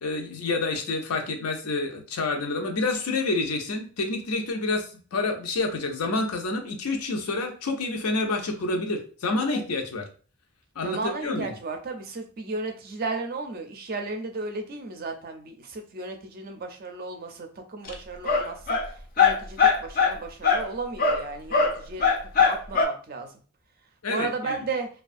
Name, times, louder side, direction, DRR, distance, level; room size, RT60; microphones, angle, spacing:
voice 1, 0.0-10.0 10.8-11.5 24.0-24.6, left 3 dB, 90° left, 4 dB, 0.5 m, -28 dB
voice 2, 10.8-23.3 24.1-24.9, right 3 dB, 40° right, 5 dB, 0.4 m, -34 dB
sound 1, 17.9-18.0 18.3-18.9 19.2-20.2 20.4-20.7 21.0-21.3 21.5-22.8, left 5 dB, 40° left, 0.4 m, -21 dB
2.4 x 2.3 x 2.5 m, 0.39 s
head